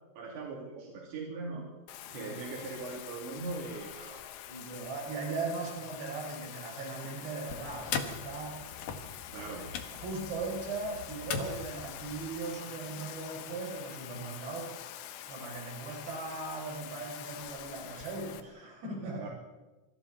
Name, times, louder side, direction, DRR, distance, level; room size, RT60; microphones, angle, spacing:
voice 1, 0.2-1.7 2.1-4.2 9.3-9.6 19.2-19.3, right 3 dB, 90° right, -2 dB, 5.3 m, -40 dB
Bathtub (filling or washing), 1.9-18.4, left 11 dB, 80° left, 3.3 m, -46 dB
voice 2, 4.5-8.7 9.4-9.7 9.9-14.9 15.3-19.3, right 3 dB, 70° right, -1 dB, 7.9 m, -39 dB
sound 1, 7.5-12.3, left 6 dB, 60° left, 3.0 m, -40 dB
26.5 x 26.0 x 4.2 m, 1.2 s
omnidirectional pair, 4.9 m